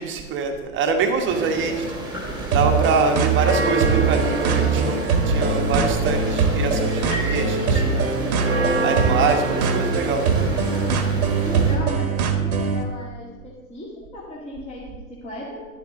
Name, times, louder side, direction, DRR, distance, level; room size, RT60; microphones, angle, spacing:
voice 1, 0.0-2.0 2.5-8.2 8.8-10.7, right 4 dB, 25° right, 4 dB, 1.4 m, -25 dB
sound 1, 1.3-11.8, right 2 dB, 10° right, 1.9 m, -28 dB
sound 2, 2.5-12.8, right 4 dB, 70° right, 1.4 m, -22 dB
sound 3, 6.9-8.0, left 2 dB, 90° left, 3.3 m, -33 dB
voice 2, 11.4-15.6, left 1 dB, 15° left, -6 dB, 1.9 m, -36 dB
11.0 x 7.9 x 3.7 m, 1.3 s
hypercardioid pair, 120°, 45 cm